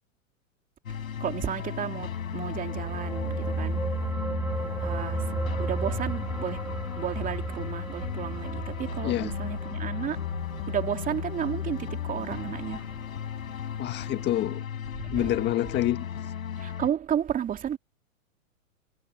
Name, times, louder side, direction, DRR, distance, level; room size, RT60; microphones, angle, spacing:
sound 1, 0.9-16.9, left 8 dB, 85° left, 7.1 m, -35 dB
voice 1, 0.9-4.1 4.5-10.3 10.7-12.9 14.9-15.4 16.6-17.8, right 9 dB, 20° right, 2.9 m, -33 dB
sound 2, 2.3-13.0 13.4-13.5, right 3 dB, 5° right, 0.9 m, -34 dB
voice 2, 13.8-14.6 15.1-16.0, left 13 dB, 25° left, 1.7 m, -27 dB
hypercardioid pair, 130°, 40 cm